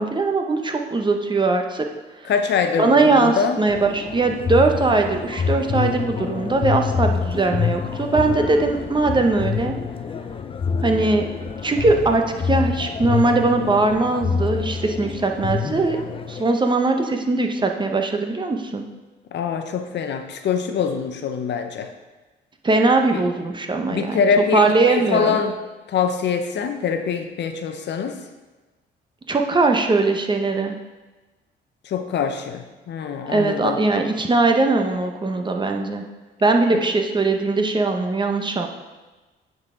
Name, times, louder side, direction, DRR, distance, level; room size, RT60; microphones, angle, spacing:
voice 1, 0.0-1.8 2.8-9.8 10.8-11.3 11.6-16.0 16.3-18.8 22.6-24.2 24.5-25.4 29.3-30.8 33.3-36.0 36.4-38.7, right 3 dB, 25° right, 4 dB, 0.8 m, -20 dB
voice 2, 2.2-3.6 19.3-21.9 23.1-23.3 23.9-25.6 25.9-28.2 31.8-33.8 36.7-36.8, left 6 dB, 65° left, 7 dB, 0.7 m, -24 dB
sound 1, 3.7-16.4, left 6 dB, 25° left, 0.4 m, -27 dB
9.6 x 4.1 x 3.7 m, 1.2 s
cardioid pair, 90°, 20 cm